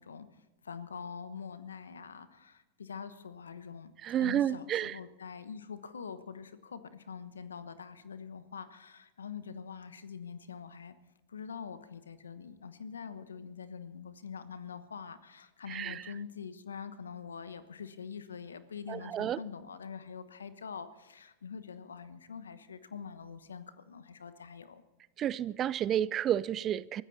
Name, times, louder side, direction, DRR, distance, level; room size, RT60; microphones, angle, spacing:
voice 1, 0.0-3.9 4.2-10.9 11.3-24.8, left 6 dB, 85° left, 1.1 m, -44 dB
voice 2, 4.0-5.0 15.7-16.0 18.9-19.4 25.2-27.0, right 10 dB, 35° right, 0.5 m, -31 dB
23.5 x 14.5 x 4.2 m
hypercardioid pair, 95°, 0 cm